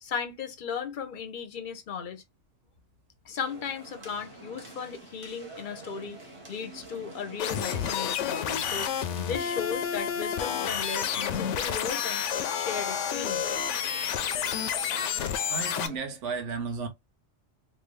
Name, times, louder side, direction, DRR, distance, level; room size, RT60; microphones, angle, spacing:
voice 1, 0.0-2.2 3.2-6.2 6.5-12.3 12.5-13.7, left 6 dB, 50° left, 0.7 m, -36 dB
sound 1, 3.4-16.0, right 2 dB, 30° right, 1.0 m, -47 dB
sound 2, 7.4-15.9, left 8 dB, 80° left, 0.9 m, -30 dB
voice 2, 15.0-16.9, right 5 dB, 80° right, 1.1 m, -34 dB
3.4 x 2.6 x 3.1 m
omnidirectional pair, 1.2 m